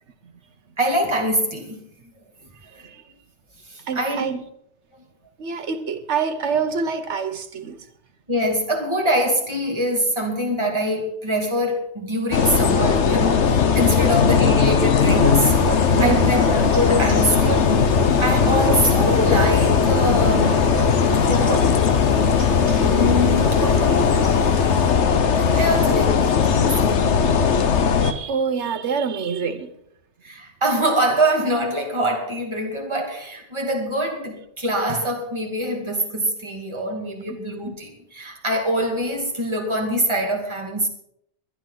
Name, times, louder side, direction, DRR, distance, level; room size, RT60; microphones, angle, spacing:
voice 1, 0.8-1.8 2.7-2.9 3.7-4.3 8.3-16.4 16.7-17.7 18.2-20.8 21.1-21.7 22.7-23.9 25.4-27.2 30.2-40.9, equal, 25° right, 2.6 m, -24 dB
voice 2, 3.8-4.4 5.4-7.9 14.0-14.2 16.0-16.5 21.0-21.2 22.2-22.4 27.9-29.7 37.3-37.4, right 6 dB, 85° right, 1.3 m, -27 dB
sound 1, 12.3-28.1, left 6 dB, 85° left, 1.3 m, -18 dB
sound 2, 15.0-24.9, right 2 dB, 60° right, 2.5 m, -31 dB
21.5 x 10.5 x 4.0 m
omnidirectional pair, 1.1 m